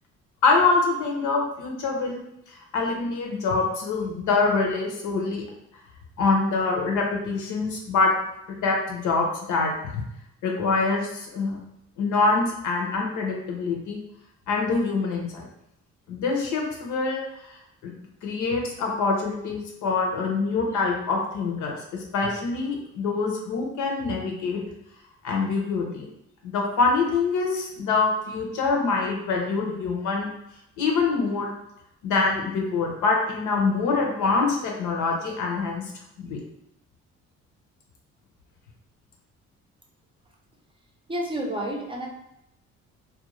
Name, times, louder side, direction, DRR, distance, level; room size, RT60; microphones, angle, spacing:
voice 1, 0.4-2.2 2.7-5.4 6.2-8.1 8.6-10.0 10.4-11.6 12.0-14.0 14.5-15.5 16.1-17.2 17.5-17.6 17.8-17.9 18.2-24.6 25.2-26.1 26.4-30.3 30.8-31.5 32.0-35.8 36.2-36.4, left 4 dB, 80° left, 0 dB, 0.7 m, -25 dB
voice 2, 41.1-42.1, right 1 dB, 15° right, 0 dB, 0.5 m, -29 dB
2.5 x 2.2 x 3.0 m, 0.79 s
cardioid pair, 90°, 30 cm